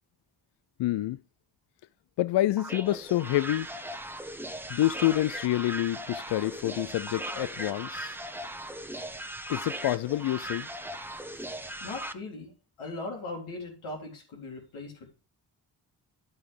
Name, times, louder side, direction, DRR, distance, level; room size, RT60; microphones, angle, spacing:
voice 1, 0.8-1.2 2.2-3.7 4.7-8.2 9.5-10.7, left 15 dB, 60° left, 0.5 m, -27 dB
sound 1, 2.6-12.1, right 1 dB, 5° right, 1.0 m, -38 dB
voice 2, 11.8-12.5 12.8-15.1, left 2 dB, 90° left, 3.8 m, -39 dB
10.5 x 8.1 x 3.6 m
supercardioid pair, 50°, 47 cm